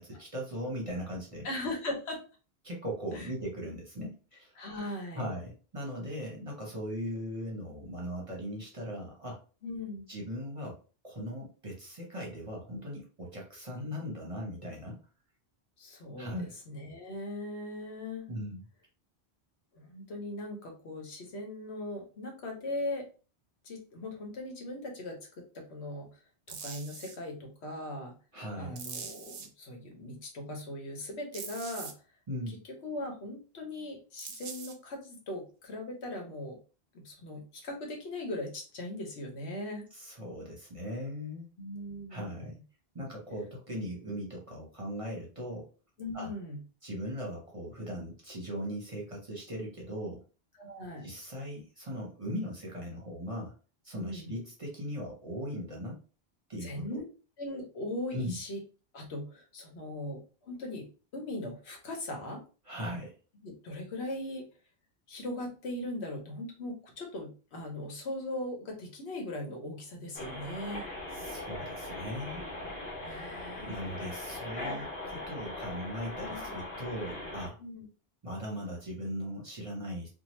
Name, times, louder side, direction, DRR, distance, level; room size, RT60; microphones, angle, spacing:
voice 1, 0.0-1.5 2.6-4.6 5.1-9.4 10.1-10.8 11.0-15.0 16.2-16.5 18.3-18.6 28.3-28.8 32.3-32.6 39.9-41.5 42.1-42.5 42.9-45.7 46.1-46.3 46.8-50.2 51.0-53.5 53.8-56.0 56.5-57.0 58.1-58.4 62.7-63.2 71.1-72.5 73.6-77.6 78.2-80.1, equal, 35° right, -1 dB, 0.7 m, -39 dB
voice 2, 1.4-2.2 3.1-3.3 4.6-5.3 9.6-10.1 15.8-16.3 16.7-18.3 19.7-23.0 23.6-26.1 26.5-28.1 28.6-31.9 32.5-32.6 32.8-36.6 36.9-39.8 41.6-42.5 46.0-46.6 50.6-51.1 54.0-54.3 56.6-57.0 57.4-58.6 58.9-60.9 61.1-62.4 63.4-64.5 65.1-70.9 73.0-73.8 76.2-76.4 77.6-77.9, left 1 dB, 75° left, 1 dB, 1.1 m, -39 dB
sound 1, 26.5-27.2 28.8-29.5 31.3-31.9 34.2-34.7, right 6 dB, 90° right, 0.9 m, -42 dB
sound 2, 70.1-77.5, left 2 dB, 55° left, 1.0 m, -40 dB
2.8 x 2.1 x 3.0 m, 0.35 s
omnidirectional pair, 1.1 m